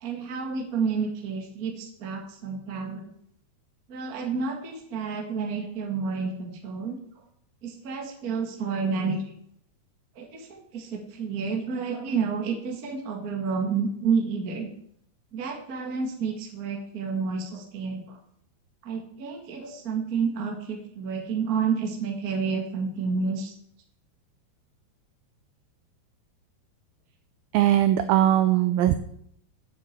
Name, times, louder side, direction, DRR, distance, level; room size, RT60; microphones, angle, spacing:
voice 1, 0.0-3.1 3.9-7.0 7.6-9.2 10.1-14.7 15.3-18.2 18.8-23.5, right 5 dB, 60° right, 3 dB, 0.9 m, -30 dB
voice 2, 27.5-28.9, right 12 dB, 85° right, 11 dB, 2.0 m, -20 dB
8.5 x 7.5 x 8.1 m, 0.69 s
omnidirectional pair, 4.8 m